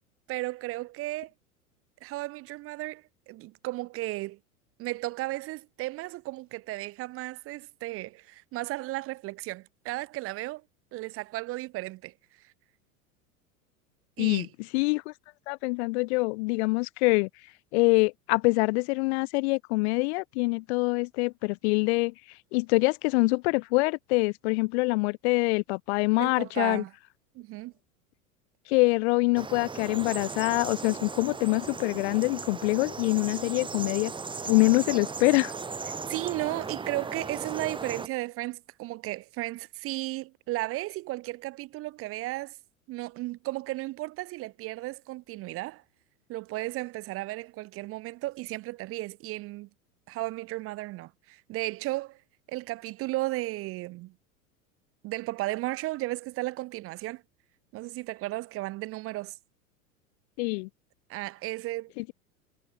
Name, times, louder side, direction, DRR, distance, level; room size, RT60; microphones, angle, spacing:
voice 1, 0.3-1.3 2.0-4.4 4.8-10.6 10.9-12.1 12.4-12.5 14.2-14.5 26.2-26.9 27.3-27.7 36.1-42.6 42.9-45.8 46.3-49.7 50.1-52.2 52.5-54.1 55.0-57.2 57.7-59.4 61.1-62.1, right 19 dB, 30° right, 0.6 m, -34 dB
voice 2, 14.7-15.1 15.5-17.3 17.7-22.1 22.5-26.8 28.7-34.1 34.5-35.5 60.4-60.7 62.0-62.1, left 27 dB, 50° left, 0.7 m, -25 dB
sound 1, 29.4-38.1, right 4 dB, 10° right, 1.3 m, -37 dB
hypercardioid pair, 90°, 44 cm